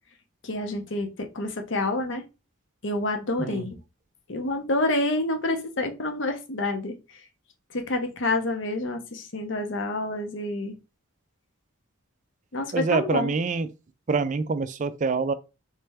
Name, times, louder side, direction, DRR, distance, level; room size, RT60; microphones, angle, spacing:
voice 1, 0.4-2.2 2.8-3.8 4.3-7.2 7.7-10.7 12.5-13.3, left 2 dB, 55° left, 0.7 m, -28 dB
voice 2, 12.7-13.7 14.1-15.3, right 4 dB, 35° right, 0.3 m, -25 dB
3.3 x 3.3 x 3.3 m
head